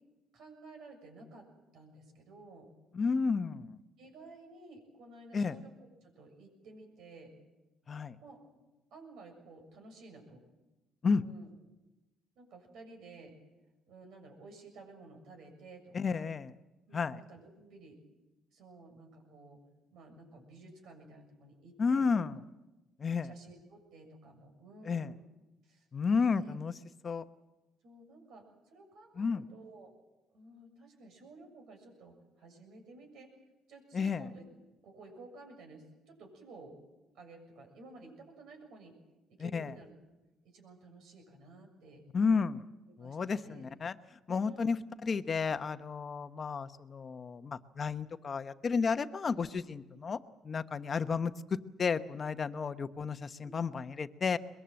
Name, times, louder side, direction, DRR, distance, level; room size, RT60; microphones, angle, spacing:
voice 1, 0.3-1.5 1.7-2.7 4.0-7.3 8.2-8.4 8.9-10.4 11.2-11.5 12.3-13.3 13.9-16.3 16.9-18.0 18.5-19.6 19.9-22.1 23.2-25.2 25.6-26.5 27.8-29.9 30.3-33.3 33.7-34.4 34.8-36.8 37.1-38.9 39.3-39.9 40.4-42.0 42.9-43.7 44.3-44.8 49.9-50.0 53.4-53.6, right 3 dB, 70° right, 4 dB, 6.9 m, -54 dB
voice 2, 2.9-3.8 5.3-5.6 7.9-8.2 11.0-11.2 15.9-16.5 16.9-17.2 21.8-22.4 23.0-23.3 24.8-25.1 25.9-26.8 27.0-27.2 29.2-29.4 33.9-34.3 39.4-39.7 42.1-42.6 43.0-43.9 44.3-44.8 45.0-50.2 50.5-54.4, left 5 dB, 35° left, 11 dB, 1.0 m, -32 dB
22.5 x 22.0 x 7.7 m, 1.0 s
cardioid pair, 105°, 0 cm